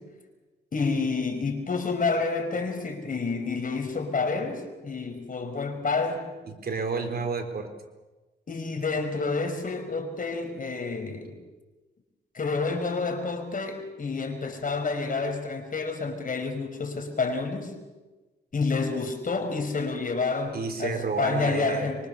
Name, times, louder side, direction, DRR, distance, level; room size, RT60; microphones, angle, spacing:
voice 1, 0.7-6.3 8.5-11.3 12.3-17.7 18.5-22.1, left 4 dB, 50° left, 6 dB, 5.2 m, -29 dB
voice 2, 6.4-7.7 20.5-21.9, right 4 dB, 60° right, 6 dB, 3.9 m, -30 dB
24.5 x 24.5 x 7.0 m, 1.2 s
cardioid pair, 70°, 18 cm